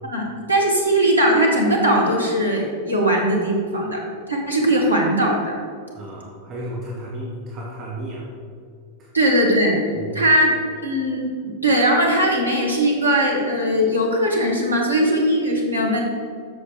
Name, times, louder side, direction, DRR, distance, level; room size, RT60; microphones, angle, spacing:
voice 1, 0.0-4.0 4.3-5.6 9.1-9.8 10.1-10.6 10.8-16.0, right 1 dB, 85° right, -1 dB, 1.6 m, -19 dB
voice 2, 5.9-8.3 9.0-9.1 10.0-10.3, right 1 dB, 30° right, -3 dB, 1.2 m, -33 dB
7.4 x 6.4 x 4.6 m, 2.2 s
figure-of-eight pair, 90°, 0 cm